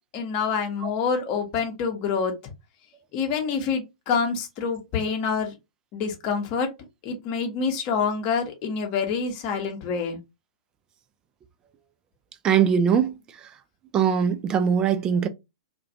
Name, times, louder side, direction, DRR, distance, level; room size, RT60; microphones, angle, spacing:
voice 1, 0.1-2.3 3.1-5.5 5.9-6.7 7.0-10.2, left 5 dB, 35° left, 0.8 m, -26 dB
voice 2, 12.4-13.5 13.9-15.3, right 7 dB, 20° right, 0.4 m, -22 dB
2.4 x 2.2 x 2.7 m
figure-of-eight pair, 110°, 4 cm